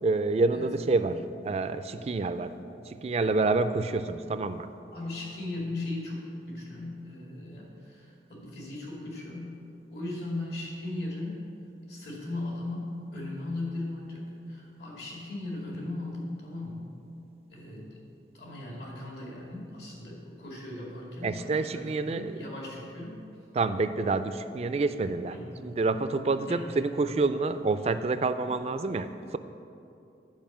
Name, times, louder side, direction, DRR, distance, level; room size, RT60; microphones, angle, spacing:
voice 1, 0.0-1.2 1.4-2.5 2.9-4.7 21.2-22.3 23.6-25.3 25.6-29.4, right 3 dB, 35° right, 11 dB, 0.3 m, -28 dB
voice 2, 0.5-1.2 2.5-2.6 4.9-9.5 9.9-11.4 11.9-16.9 17.5-18.0 18.3-23.2 25.3-25.5 26.5-26.7, left 2 dB, 70° left, -3 dB, 2.3 m, -38 dB
9.1 x 5.1 x 7.3 m, 2.6 s
head